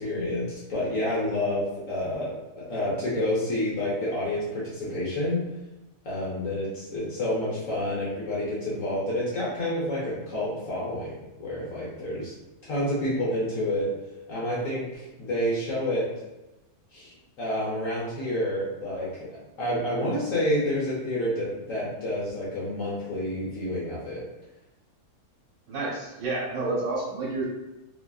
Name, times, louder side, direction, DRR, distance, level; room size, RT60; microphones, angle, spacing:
voice 1, 0.0-5.4 6.0-12.3 12.6-13.9 14.3-16.1 16.9-19.3 19.6-24.2, left 1 dB, 65° left, -7 dB, 1.1 m, -29 dB
voice 2, 25.7-27.5, right 3 dB, 70° right, -4 dB, 1.2 m, -29 dB
2.7 x 2.4 x 2.2 m, 1.0 s
omnidirectional pair, 1.6 m